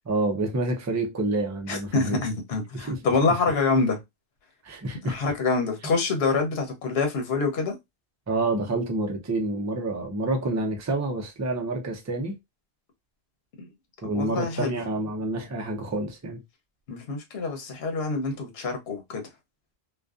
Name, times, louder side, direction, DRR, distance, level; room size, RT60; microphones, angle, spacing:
voice 1, 0.1-2.2 2.7-3.0 4.6-5.2 8.3-12.3 14.0-16.4, right 2 dB, 25° right, 0.3 m, -28 dB
voice 2, 1.7-4.0 5.0-7.8 13.6-13.7 14.0-14.7 16.9-19.3, left 4 dB, 75° left, 1.0 m, -26 dB
2.5 x 2.3 x 2.3 m
omnidirectional pair, 1.0 m